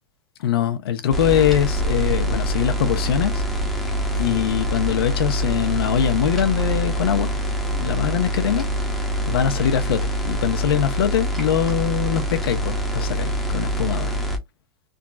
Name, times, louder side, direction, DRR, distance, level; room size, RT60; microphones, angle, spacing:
voice 1, 0.4-3.4 4.1-7.3 7.8-8.7 9.3-14.2, left 10 dB, 85° left, 0.9 m, -22 dB
sound 1, 1.1-14.4, right 1 dB, ahead, 0.9 m, -25 dB
3.7 x 2.3 x 2.7 m
supercardioid pair, 155°, 12 cm